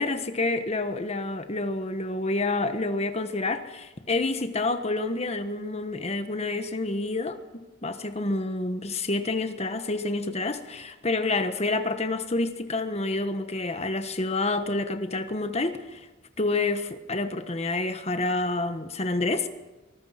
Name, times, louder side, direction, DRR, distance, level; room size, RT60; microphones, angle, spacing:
voice 1, 0.0-7.4 7.8-16.1 16.4-19.5, left 2 dB, 35° left, 9 dB, 1.4 m, -28 dB
24.0 x 20.0 x 5.9 m, 1.2 s
head